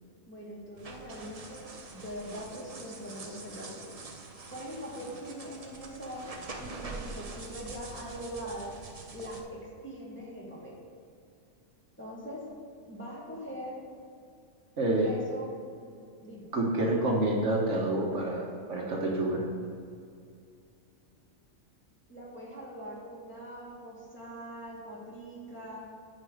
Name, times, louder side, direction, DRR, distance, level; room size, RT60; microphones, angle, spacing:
voice 1, 0.3-1.7 1.9-3.9 4.5-6.3 6.6-8.7 9.1-10.8 12.0-12.4 12.9-13.8 15.0-15.5 16.2-16.5 22.1-25.8, equal, 10° left, -6 dB, 2.1 m, -42 dB
sound 1, 0.8-9.4, right 3 dB, 35° right, 0.7 m, -45 dB
voice 2, 14.8-15.1 16.5-19.4, right 2 dB, 65° right, -1 dB, 1.5 m, -28 dB
9.6 x 5.2 x 6.3 m, 2.3 s
omnidirectional pair, 1.4 m